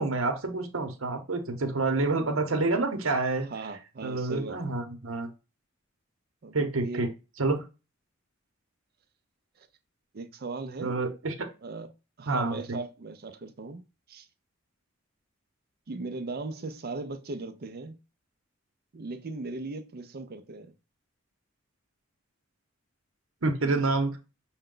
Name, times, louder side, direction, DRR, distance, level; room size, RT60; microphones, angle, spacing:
voice 1, 0.0-3.5 4.0-5.3 6.5-7.1 7.4-7.6 10.8-11.5 12.3-12.8 23.4-24.2, right 3 dB, 85° right, 1.0 m, -28 dB
voice 2, 3.5-4.7 6.4-6.6 6.8-7.0 9.6-9.7 10.1-11.2 11.6-11.9 12.2-13.8 14.1-14.3 15.9-18.0 18.9-20.7, right 3 dB, 50° right, 0.5 m, -38 dB
6.3 x 2.2 x 3.7 m
head